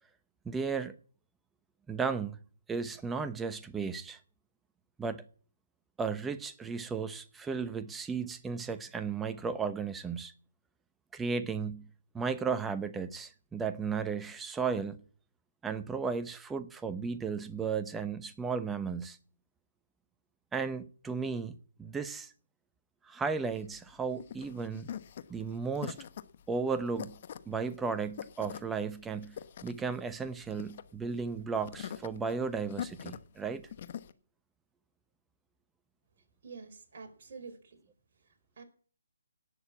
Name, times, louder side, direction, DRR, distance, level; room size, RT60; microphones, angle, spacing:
voice 1, 0.5-0.9 1.9-2.4 2.7-4.2 5.0-5.2 6.0-10.3 11.1-11.9 12.1-15.0 15.6-19.2 20.5-21.5 21.8-22.3 23.0-24.9 25.3-26.0 26.5-27.1 27.5-29.4 29.6-33.6, right 5 dB, 10° right, 0.8 m, -34 dB
sound 1, 23.5-34.1, left 9 dB, 40° left, 1.1 m, -44 dB
voice 2, 36.4-37.8 38.1-38.6, right 4 dB, 45° right, 4.4 m, -48 dB
18.0 x 6.7 x 8.5 m
figure-of-eight pair, 150°, 0 cm